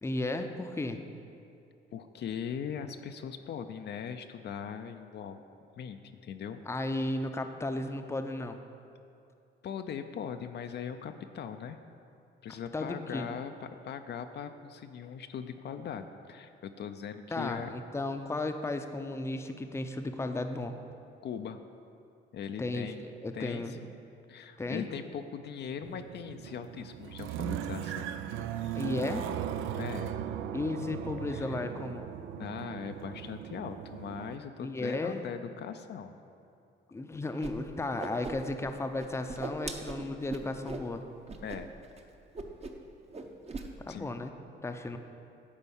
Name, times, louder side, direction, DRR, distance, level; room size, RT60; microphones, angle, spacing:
voice 1, 0.0-1.0 6.7-8.6 12.7-13.3 17.3-20.7 22.6-22.9 23.2-23.8 24.6-24.9 28.7-29.3 30.5-32.1 34.6-35.3 36.9-41.0 43.8-44.3 44.6-45.0, left 2 dB, 15° left, 6 dB, 0.6 m, -34 dB
voice 2, 1.9-5.4 5.8-6.6 9.6-11.8 12.4-17.7 21.2-21.6 22.3-23.0 23.3-23.9 24.3-28.1 29.7-30.2 31.3-31.6 32.4-36.1 41.4-41.7 43.9-44.1, left 7 dB, 60° left, 8 dB, 0.5 m, -40 dB
sound 1, 25.8-34.4, right 9 dB, 85° right, 0.4 m, -38 dB
Whoosh swoosh swish, 37.4-37.5 37.8-38.7 39.0-40.9 41.3-41.6 41.8-42.0 42.3-42.9 43.1-43.7, right 3 dB, 30° right, 0.8 m, -39 dB
9.9 x 4.5 x 7.1 m, 2.5 s
cardioid pair, 90°, 20 cm